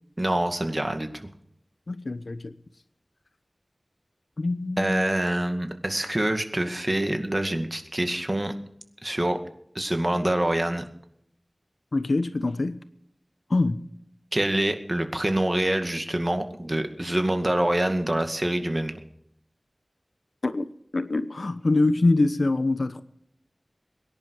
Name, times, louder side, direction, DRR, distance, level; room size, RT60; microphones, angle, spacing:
voice 1, 0.2-1.1 4.8-8.5 9.0-9.4 9.7-10.9 14.3-19.0, right 1 dB, 30° right, 2.1 m, -26 dB
voice 2, 1.9-2.5 4.4-5.1 11.9-12.8 13.5-13.8 20.4-20.7 20.9-23.0, left 2 dB, 80° left, 1.1 m, -24 dB
23.5 x 10.5 x 4.7 m
wide cardioid pair, 55°, 0 cm